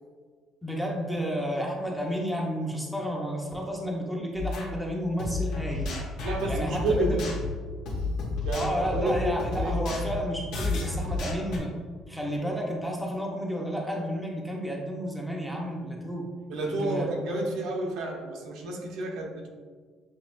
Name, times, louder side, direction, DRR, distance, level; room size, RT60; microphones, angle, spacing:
voice 1, 0.6-6.0 6.5-7.2 8.5-11.7 12.1-16.3 16.7-17.1, equal, ahead, -1 dB, 0.6 m, -31 dB
sound 1, 4.4-4.7 5.2-11.6, left 2 dB, 85° left, 1.2 m, -31 dB
voice 2, 6.2-7.2 8.4-9.8 16.5-19.5, right 2 dB, 80° right, 0 dB, 0.8 m, -30 dB
7.2 x 2.9 x 2.4 m, 1.5 s
cardioid pair, 150°, 0 cm